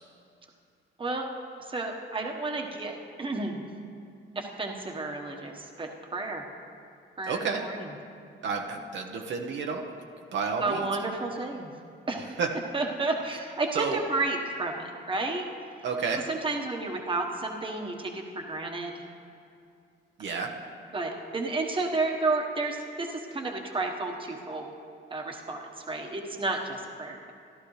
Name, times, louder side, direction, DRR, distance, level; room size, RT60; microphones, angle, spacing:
voice 1, 1.7-3.6 4.3-6.4 7.2-7.8 10.6-11.7 12.1-12.4 12.7-15.5 16.3-18.9 20.2-20.4 20.9-24.7 25.1-27.3, right 3 dB, 25° right, 1 dB, 1.3 m, -31 dB
voice 2, 7.3-7.6 8.4-9.8 10.3-10.8 12.4-12.5 13.7-14.0 15.8-16.2 20.2-20.5, right 5 dB, 65° right, 2 dB, 1.0 m, -30 dB
14.5 x 11.5 x 3.3 m, 2.4 s
cardioid pair, 90°, 20 cm